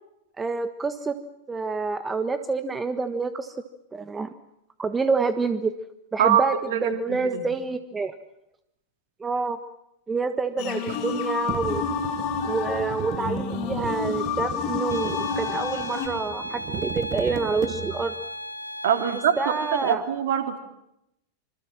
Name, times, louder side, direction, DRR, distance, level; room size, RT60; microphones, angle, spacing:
voice 1, 0.4-1.2 1.5-3.6 3.9-4.3 4.8-5.7 6.1-6.5 6.8-8.2 9.2-9.6 10.1-11.8 12.4-18.1 19.4-20.0, right 4 dB, 15° right, 11 dB, 1.4 m, -27 dB
voice 2, 6.2-7.5 10.9-11.0 18.8-19.3 19.8-20.6, right 9 dB, 55° right, 7 dB, 3.3 m, -24 dB
sound 1, 10.6-16.1, left 6 dB, 45° left, 5.3 m, -29 dB
sound 2, 11.5-18.2, right 10 dB, 35° right, 1.6 m, -35 dB
sound 3, 14.9-19.9, equal, 85° right, 2.3 m, -36 dB
26.5 x 26.0 x 7.4 m, 0.82 s
figure-of-eight pair, 90°, 0 cm